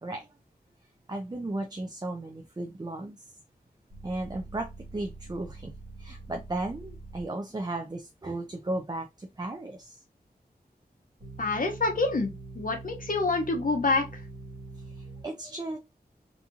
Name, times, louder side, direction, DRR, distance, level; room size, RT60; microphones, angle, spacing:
voice 1, 1.1-3.2 4.0-10.0 15.0-15.8, right 2 dB, 25° right, 0.4 m, -35 dB
sound 1, 3.9-7.3 11.2-15.2, right 3 dB, 85° right, 1.1 m, -44 dB
voice 2, 11.4-14.2, left 3 dB, 55° left, 0.7 m, -27 dB
2.6 x 2.4 x 2.8 m
wide cardioid pair, 80°, 17 cm